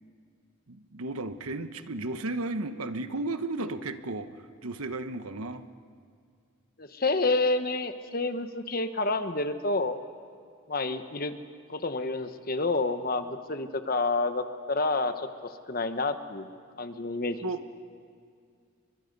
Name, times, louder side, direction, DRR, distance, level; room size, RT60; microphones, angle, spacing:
voice 1, 0.7-4.3 4.6-5.6 17.4-17.6, right 2 dB, 85° right, 10 dB, 1.2 m, -34 dB
voice 2, 6.8-10.0 10.7-11.3 11.7-16.5 16.8-17.5, left 3 dB, 40° left, 9 dB, 1.1 m, -29 dB
30.0 x 24.0 x 5.4 m, 2.3 s
head